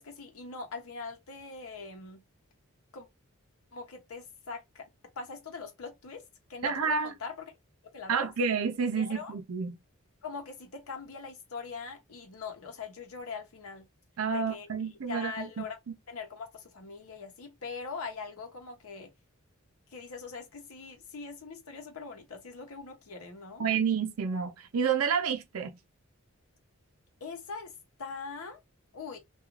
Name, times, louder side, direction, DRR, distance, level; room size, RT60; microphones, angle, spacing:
voice 1, 0.0-2.2 2.9-3.1 3.7-4.9 5.2-7.5 7.9-8.3 9.0-9.4 10.2-13.9 14.3-14.7 15.1-15.8 16.1-19.1 19.9-23.7 27.2-28.6 28.9-29.2, left 4 dB, 80° left, 0.8 m, -42 dB
voice 2, 6.6-7.1 8.1-9.7 14.2-15.6 23.6-25.8, right 6 dB, 80° right, 0.5 m, -29 dB
2.4 x 2.3 x 3.0 m
head